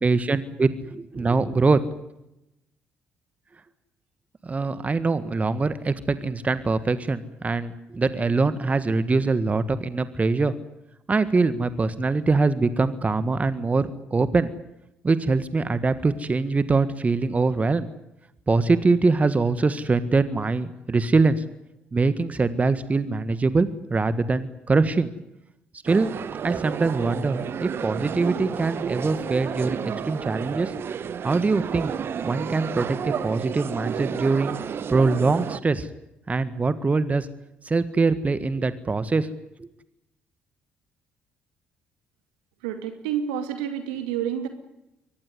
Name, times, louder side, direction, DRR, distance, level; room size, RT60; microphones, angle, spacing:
voice 1, 0.0-1.8 4.4-10.5 11.1-14.5 15.0-17.9 18.5-21.4 21.9-25.1 25.8-26.1 26.4-29.8 30.0-30.7 31.2-31.9 32.2-34.6 34.9-35.9 36.3-37.3 37.6-39.3 39.6-39.7, right 3 dB, 30° right, 13 dB, 1.6 m, -23 dB
sound 1, 25.9-35.6, right 7 dB, 50° right, 1.1 m, -31 dB
voice 2, 42.6-44.5, right 9 dB, 75° right, 7 dB, 2.5 m, -29 dB
23.5 x 19.5 x 9.7 m, 0.87 s
figure-of-eight pair, 45°, 5 cm